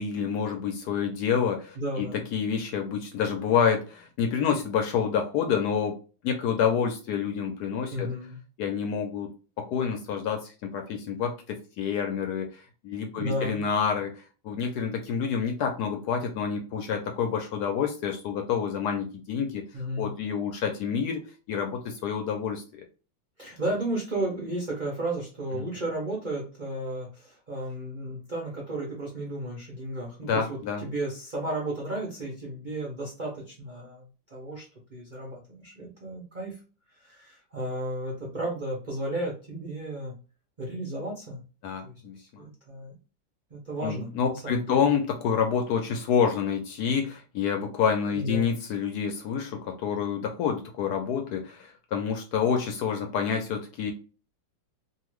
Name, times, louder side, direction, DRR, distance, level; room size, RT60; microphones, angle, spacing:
voice 1, 0.0-2.1 2.3-6.0 6.2-8.1 8.6-19.6 20.0-21.2 21.5-22.8 25.5-25.7 30.2-30.8 41.6-42.4 43.8-53.9, left 7 dB, 70° left, 4 dB, 1.0 m, -28 dB
voice 2, 1.8-2.2 7.9-8.4 13.2-13.6 19.7-20.1 23.4-36.6 36.9-40.1 40.6-41.4 41.8-43.0 43.5-44.8 48.1-48.5, right 1 dB, 60° right, -3 dB, 0.5 m, -33 dB
2.8 x 2.5 x 3.0 m, 0.35 s
omnidirectional pair, 2.0 m